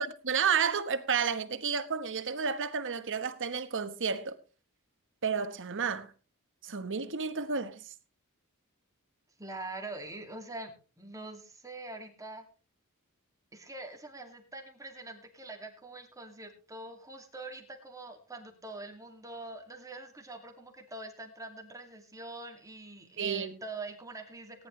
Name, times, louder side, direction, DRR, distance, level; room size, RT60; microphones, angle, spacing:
voice 1, 0.2-4.4 5.2-6.1 6.6-7.8 23.2-23.6, right 6 dB, 60° right, 1.3 m, -31 dB
voice 2, 9.4-12.4 13.5-24.7, right 2 dB, 15° right, 2.5 m, -44 dB
18.0 x 10.5 x 3.3 m
head